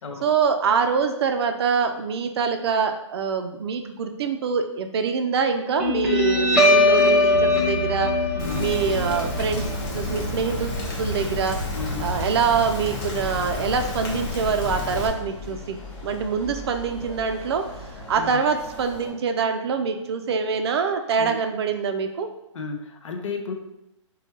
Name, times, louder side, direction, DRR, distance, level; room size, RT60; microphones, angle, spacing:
voice 1, 0.2-8.1 8.6-11.6 12.0-17.7 17.9-22.3, right 6 dB, 55° right, 6 dB, 0.4 m, -25 dB
Guitar, 5.8-12.8, left 2 dB, 5° right, 0.5 m, -22 dB
voice 2, 8.3-8.7 11.7-12.1 18.1-18.4 21.2-21.4 22.5-23.5, left 4 dB, 70° left, 4 dB, 0.6 m, -33 dB
Rain, 8.4-15.1, left 3 dB, 30° left, 0.8 m, -31 dB
sound 1, 8.6-19.1, left 2 dB, 55° left, 1.2 m, -40 dB
4.3 x 2.2 x 2.9 m, 0.86 s
hypercardioid pair, 145°, 16 cm